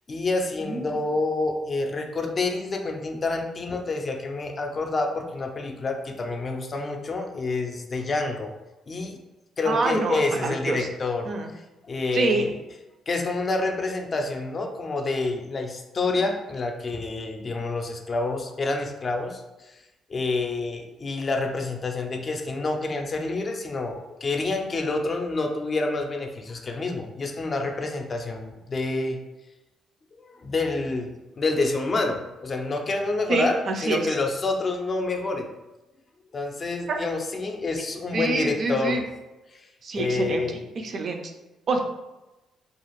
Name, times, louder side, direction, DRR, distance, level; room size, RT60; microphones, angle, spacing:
voice 1, 0.1-8.5 8.9-9.2 9.6-11.3 11.8-12.5 13.1-19.8 20.1-29.2 30.2-33.6 33.8-35.5 36.3-39.0 39.5-39.7 39.9-40.6, left 3 dB, 40° left, 3 dB, 0.4 m, -28 dB
voice 2, 0.6-1.0 9.7-10.9 11.3-11.5 12.1-12.5 33.3-34.2 36.9-37.0 38.1-39.0 39.8-41.3 41.7-41.8, right 3 dB, 55° right, 4 dB, 0.4 m, -26 dB
2.4 x 2.4 x 3.1 m, 1.0 s
cardioid pair, 90°, 0 cm